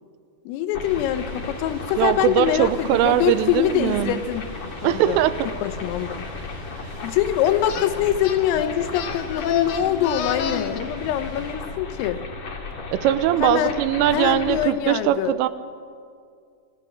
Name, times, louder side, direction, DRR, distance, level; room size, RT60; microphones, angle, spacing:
voice 1, 0.5-4.5 4.8-5.2 5.6-6.3 7.0-12.2 13.4-13.8 14.1-15.4, left 11 dB, 90° left, 10 dB, 3.8 m, -24 dB
sound 1, 0.7-14.7, left 4 dB, 45° left, 2.1 m, -35 dB
sound 2, 0.8-11.5, right 3 dB, 45° right, 7.8 m, -43 dB
voice 2, 2.0-4.2 4.8-5.5 12.9-15.5, right 12 dB, 85° right, 13 dB, 3.3 m, -21 dB
sound 3, 7.7-7.9 8.2-10.8, left 7 dB, 65° left, 2.3 m, -29 dB
29.0 x 25.5 x 6.0 m, 2.3 s
omnidirectional pair, 5.8 m